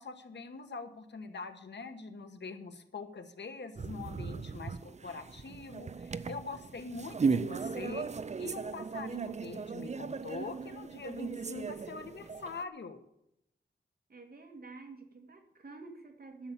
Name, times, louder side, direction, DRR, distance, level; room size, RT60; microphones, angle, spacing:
voice 1, 0.0-8.1 8.4-13.0, left 4 dB, 85° left, 8 dB, 1.2 m, -43 dB
sound 1, 3.8-12.6, right 5 dB, 40° right, 0.5 m, -37 dB
voice 2, 14.1-16.5, right 3 dB, 60° right, 3 dB, 2.2 m, -48 dB
11.5 x 7.3 x 7.1 m, 0.78 s
wide cardioid pair, 105°, 18 cm